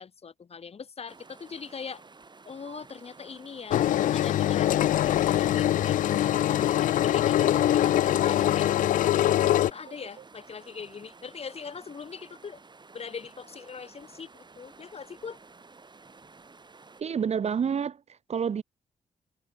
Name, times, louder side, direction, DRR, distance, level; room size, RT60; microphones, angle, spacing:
voice 1, 0.0-2.0 2.5-8.7 9.3-12.6 12.9-15.4, left 6 dB, 50° left, 2.5 m, -42 dB
sound 1, 1.1-17.0, right 4 dB, 35° right, 6.4 m, -53 dB
sound 2, 2.7-2.8 5.1-5.2 7.5-7.7 9.9-10.2, right 9 dB, 70° right, 2.8 m, -48 dB
Engine, 3.7-9.7, left 12 dB, 75° left, 0.5 m, -23 dB
voice 2, 17.0-18.0 18.3-18.6, right 7 dB, 50° right, 1.1 m, -28 dB
cardioid pair, 70°, 14 cm